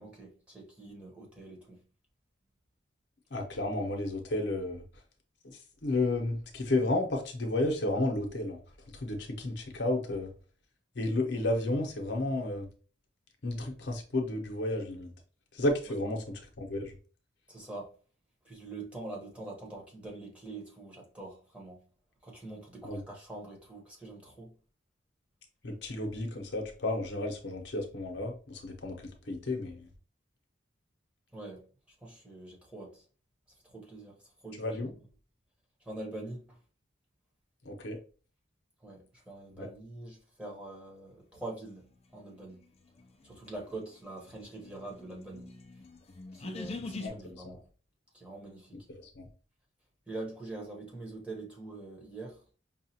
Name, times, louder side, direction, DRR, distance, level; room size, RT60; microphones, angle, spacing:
voice 1, 0.0-1.8 17.5-17.9 18.4-21.8 22.2-24.5 31.3-31.6 32.0-33.0 33.7-34.1 34.4-34.6 35.9-36.4 38.8-41.9 42.1-42.6 43.2-45.5 46.3-47.6 48.1-48.8 50.1-52.4, right 2 dB, 5° right, 1.0 m, -44 dB
voice 2, 3.3-4.8 5.4-8.6 8.9-10.3 10.9-12.7 13.4-15.1 15.5-16.9 22.8-23.0 25.6-29.9 34.6-34.9 37.6-38.0 39.6-39.7 47.0-47.6 48.9-49.3, left 2 dB, 60° left, 0.7 m, -32 dB
sound 1, 43.0-47.1, left 3 dB, 30° left, 0.3 m, -44 dB
5.4 x 2.4 x 2.8 m
head